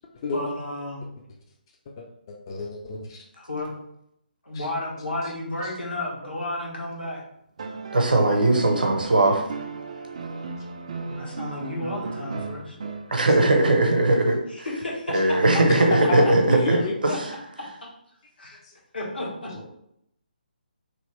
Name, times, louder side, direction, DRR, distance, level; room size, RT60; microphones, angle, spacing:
voice 1, 0.3-1.0 3.4-3.7 4.4-7.2 11.1-12.8 14.5-16.3 17.1-17.2 17.6-17.7 18.4-18.6 18.9-19.5, left 1 dB, 75° left, -3 dB, 1.2 m, -32 dB
voice 2, 1.9-3.2 4.5-4.7 15.6-16.9 18.6-18.7 19.5-19.7, left 4 dB, 25° left, 0 dB, 0.4 m, -31 dB
sound 1, 7.6-14.0 15.5-15.6, right 4 dB, 40° right, 0.3 m, -36 dB
voice 3, 7.9-9.4 13.1-14.7 15.1-17.3, right 2 dB, 60° right, 3 dB, 0.7 m, -20 dB
3.0 x 2.8 x 3.0 m, 0.75 s
figure-of-eight pair, 145°, 5 cm